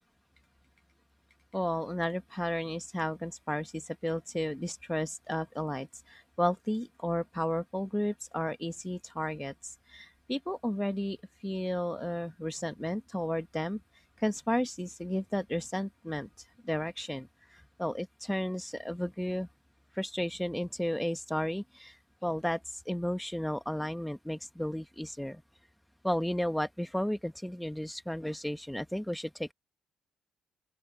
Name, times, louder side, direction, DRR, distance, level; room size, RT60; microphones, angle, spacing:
voice 1, 1.5-9.5 9.9-11.2 11.4-13.8 14.2-16.3 16.6-19.5 20.0-21.9 22.2-22.6 22.8-25.4 26.0-29.5, equal, 5° left, 1.4 m, -33 dB
open air
supercardioid pair, 70°, 0 cm